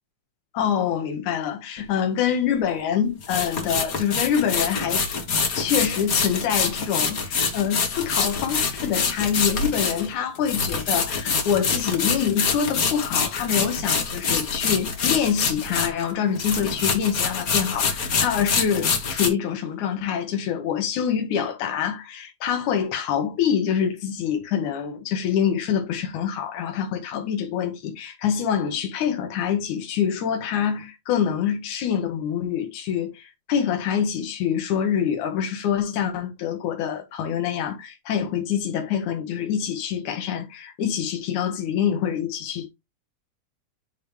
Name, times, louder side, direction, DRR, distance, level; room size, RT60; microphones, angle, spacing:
voice 1, 0.5-5.1 5.5-42.7, left 8 dB, 80° left, 2.8 m, -25 dB
sound 1, 1.8-1.9 3.2-16.1 16.4-19.3, left 5 dB, 50° left, 1.0 m, -25 dB
10.0 x 3.4 x 3.3 m
omnidirectional pair, 3.4 m